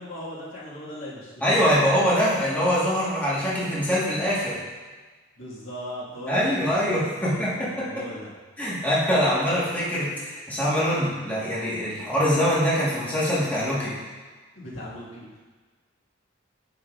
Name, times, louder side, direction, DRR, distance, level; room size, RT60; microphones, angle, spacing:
voice 1, 0.0-1.9 5.4-8.3 14.6-15.4, left 1 dB, 75° left, -7 dB, 1.9 m, -39 dB
voice 2, 1.4-4.6 6.3-8.0 8.6-13.9, equal, 10° left, -8 dB, 1.5 m, -23 dB
9.3 x 6.0 x 2.5 m, 1.4 s
head